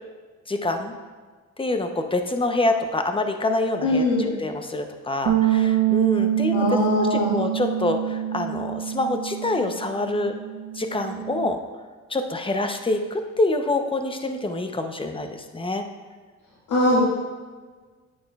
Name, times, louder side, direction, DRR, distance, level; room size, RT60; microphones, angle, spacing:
voice 1, 0.5-0.9 1.6-10.3 10.7-11.6 12.1-15.8, left 2 dB, 15° left, 6 dB, 0.7 m, -26 dB
voice 2, 3.8-4.3 6.5-7.4 16.7-17.0, left 1 dB, 80° left, -7 dB, 1.8 m, -21 dB
Bass guitar, 5.3-11.5, right 12 dB, 75° right, 0.7 m, -25 dB
8.7 x 8.6 x 2.4 m, 1.4 s
cardioid pair, 90°, 30 cm